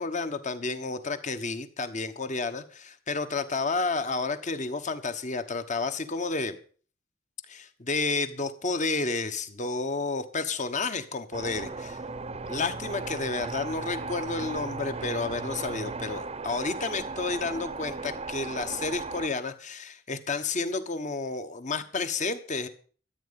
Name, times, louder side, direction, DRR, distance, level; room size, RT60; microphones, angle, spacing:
voice 1, 0.0-6.6 7.5-12.0 12.5-22.7, left 3 dB, 40° left, 10 dB, 1.3 m, -31 dB
sound 1, 11.3-19.3, right 3 dB, 30° right, 0.8 m, -36 dB
14.0 x 8.8 x 7.0 m, 0.42 s
head